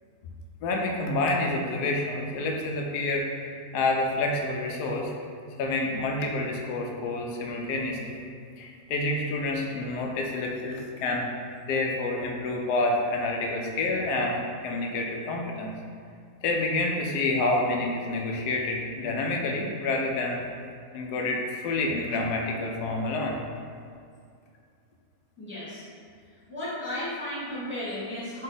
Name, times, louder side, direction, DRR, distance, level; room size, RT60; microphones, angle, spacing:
voice 1, 0.6-5.1 5.6-8.2 8.6-11.3 11.7-15.7 16.4-20.4 20.9-23.4, left 2 dB, 80° left, 1 dB, 1.1 m, -28 dB
voice 2, 25.4-25.8 26.5-28.4, left 1 dB, 10° right, -10 dB, 0.8 m, -34 dB
4.3 x 2.7 x 3.9 m, 2.3 s
omnidirectional pair, 1.7 m